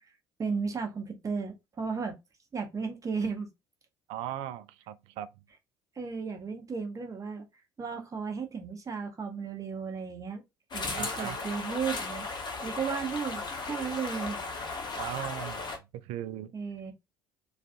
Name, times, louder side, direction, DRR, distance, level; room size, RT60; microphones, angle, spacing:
voice 1, 0.4-2.2 2.5-3.5 6.0-7.4 7.8-10.4 10.7-12.3 12.6-14.4 16.5-16.9, right 5 dB, 25° right, 0.8 m, -34 dB
voice 2, 4.1-5.3 10.9-11.4 15.0-15.6 16.0-16.5, right 12 dB, 60° right, 0.4 m, -38 dB
sound 1, 10.7-15.8, left 3 dB, 40° left, 0.8 m, -36 dB
2.4 x 2.3 x 2.4 m
figure-of-eight pair, 55°, 12 cm